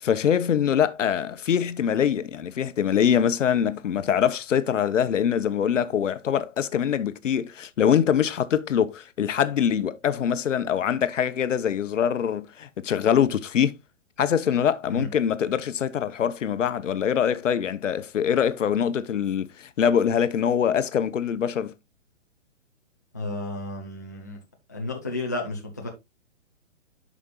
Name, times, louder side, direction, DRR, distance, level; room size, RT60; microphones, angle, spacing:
voice 1, 0.0-13.8 14.2-21.7, left 8 dB, 80° left, 0.9 m, -24 dB
voice 2, 23.1-24.4 24.7-25.9, left 2 dB, 15° left, 0.5 m, -32 dB
10.5 x 5.1 x 2.3 m
hypercardioid pair, 175°, 37 cm